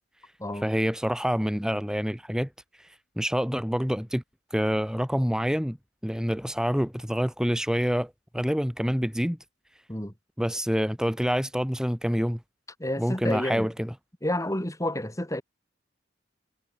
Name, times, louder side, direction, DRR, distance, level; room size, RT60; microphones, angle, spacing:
voice 1, 0.6-2.5 2.8-4.2 4.5-5.8 6.0-9.4 10.4-12.4 13.0-13.9, equal, 5° right, 3.9 m, -27 dB
voice 2, 12.8-13.7 14.2-15.4, left 1 dB, 15° left, 5.1 m, -30 dB
head